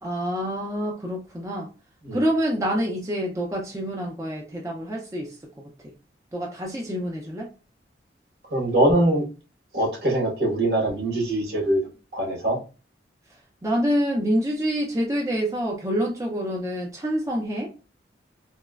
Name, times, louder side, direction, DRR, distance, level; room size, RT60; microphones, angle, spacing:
voice 1, 0.0-1.7 2.1-5.9 6.3-7.5 13.6-17.7, equal, 15° right, 0.4 m, -27 dB
voice 2, 8.5-9.2 9.7-11.8 12.1-12.6, right 1 dB, 65° right, 1.2 m, -22 dB
4.0 x 2.1 x 2.3 m
head